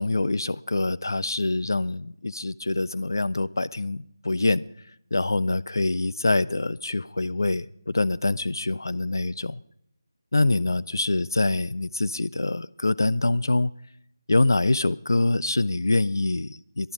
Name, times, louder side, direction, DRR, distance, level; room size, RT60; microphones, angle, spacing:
voice 1, 0.0-4.6 5.1-9.6 10.3-13.7 14.3-16.9, left 2 dB, 60° left, 0.4 m, -25 dB
13.0 x 11.0 x 5.1 m
figure-of-eight pair, 180°, 2 cm